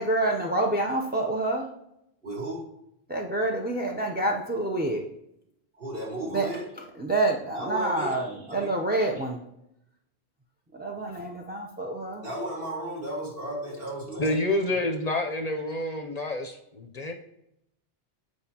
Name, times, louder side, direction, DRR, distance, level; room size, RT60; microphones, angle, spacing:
voice 1, 0.0-1.7 3.1-5.0 6.3-6.5 7.0-9.4 10.7-12.2, right 2 dB, 15° right, 1 dB, 0.4 m, -27 dB
voice 2, 2.2-2.7 5.8-6.7 7.5-8.8 9.2-9.3 12.2-14.4 14.6-14.9, right 1 dB, 55° right, -4 dB, 1.9 m, -35 dB
voice 3, 14.2-17.1, left 1 dB, 45° left, 5 dB, 0.6 m, -28 dB
8.0 x 4.9 x 2.8 m, 0.80 s
omnidirectional pair, 1.1 m